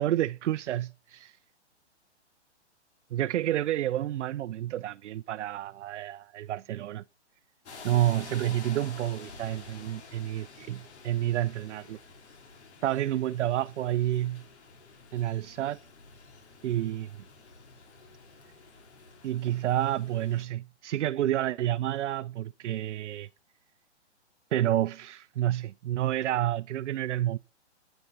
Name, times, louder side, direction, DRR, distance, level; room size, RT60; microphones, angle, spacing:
voice 1, 0.0-1.3 3.1-7.0 7.8-12.0 12.8-14.4 15.1-15.8 16.6-17.1 19.2-23.3 24.5-27.4, right 13 dB, 80° right, 0.5 m, -29 dB
sound 1, 7.7-20.4, left 4 dB, 65° left, 4.0 m, -50 dB
9.1 x 6.8 x 5.8 m
hypercardioid pair, 160°, 35 cm